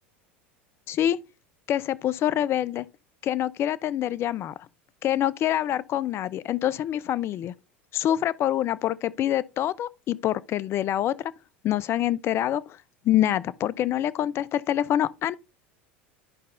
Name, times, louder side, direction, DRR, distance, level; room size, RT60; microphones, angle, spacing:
voice 1, 0.9-1.2 1.7-2.9 3.2-4.5 5.0-7.5 7.9-11.3 11.6-12.8 13.0-15.3, left 12 dB, 40° left, 0.4 m, -26 dB
11.5 x 5.3 x 2.6 m
hypercardioid pair, 85°, 6 cm